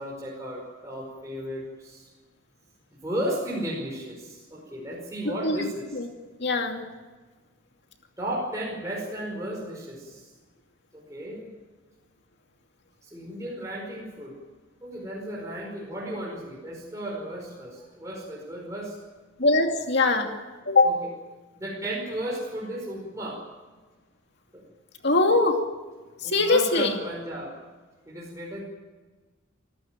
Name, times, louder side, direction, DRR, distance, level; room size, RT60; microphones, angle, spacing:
voice 1, 0.0-2.1 3.0-5.9 8.2-10.3 10.9-11.5 13.0-14.4 14.8-19.0 20.8-21.1 21.5-23.4 24.5-24.6 26.2-27.6 28.1-28.6, right 1 dB, 15° right, -3 dB, 4.9 m, -34 dB
voice 2, 5.2-5.7 5.9-6.1 6.4-6.8 19.4-20.4 20.7-20.9 25.0-25.7 26.2-27.0, left 3 dB, 55° left, 4 dB, 2.6 m, -22 dB
27.0 x 15.0 x 9.2 m, 1.3 s
head